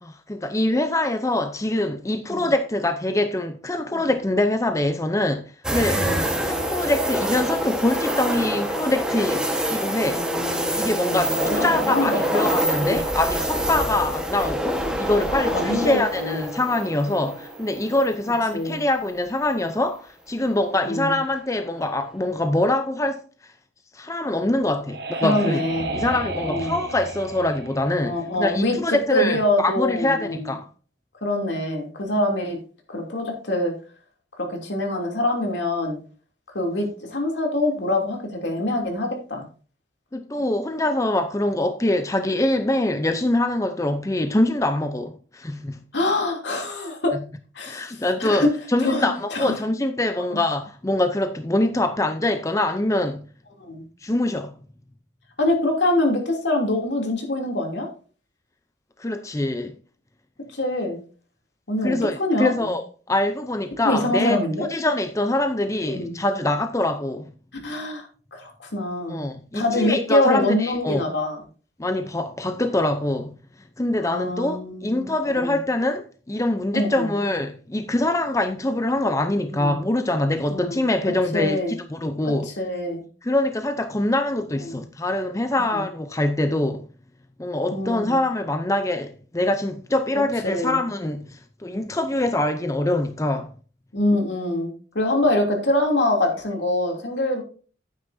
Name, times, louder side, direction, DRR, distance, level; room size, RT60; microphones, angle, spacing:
voice 1, 0.0-5.5 5.7-6.0 6.4-9.4 9.7-10.2 10.8-23.2 23.9-25.6 25.9-30.7 40.1-45.8 47.1-47.2 47.7-53.3 54.0-54.5 59.0-59.7 61.8-64.4 64.7-67.3 69.1-71.0 71.8-73.3 73.8-81.6 81.9-82.5 83.2-86.9 87.4-93.5, left 1 dB, 15° left, 0.6 m, -24 dB
sound 1, 5.6-18.7 19.1-19.2 21.6-22.0, equal, 5° right, 1.3 m, -26 dB
voice 2, 10.1-13.0 15.5-16.5 18.5-18.8 20.8-21.2 25.2-25.8 26.4-26.7 28.0-28.8 29.1-30.5 31.2-32.6 32.9-33.7 34.4-36.0 36.5-39.5 45.9-47.1 47.5-48.5 48.8-49.5 53.6-53.8 55.4-57.9 60.5-61.0 61.7-62.8 63.8-64.7 65.8-66.2 67.6-69.2 69.5-71.4 74.0-75.5 76.7-77.1 79.5-79.7 80.5-80.8 81.3-81.8 82.2-83.0 84.6-84.8 85.7-85.8 87.7-88.2 90.4-90.8 93.9-97.4, left 1 dB, 80° left, 2.9 m, -25 dB
sound 2, 24.3-28.9, right 1 dB, 60° right, 1.4 m, -33 dB
11.0 x 9.2 x 2.7 m
head